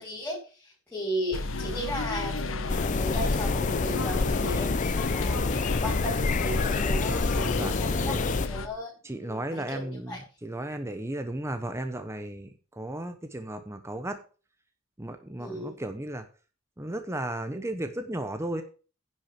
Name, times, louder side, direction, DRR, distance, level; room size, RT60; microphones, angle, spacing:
voice 1, 0.0-5.5 5.8-8.9 9.2-10.2 15.4-15.8, equal, 10° left, -7 dB, 4.7 m, -36 dB
sound 1, 1.3-8.7, left 3 dB, 70° left, 1.2 m, -33 dB
sound 2, 2.7-8.5, left 3 dB, 35° left, 0.6 m, -27 dB
voice 2, 7.5-8.2 9.0-14.2 15.0-16.3 16.8-18.6, right 1 dB, 15° right, 8 dB, 0.9 m, -35 dB
10.0 x 6.1 x 7.5 m, 0.37 s
head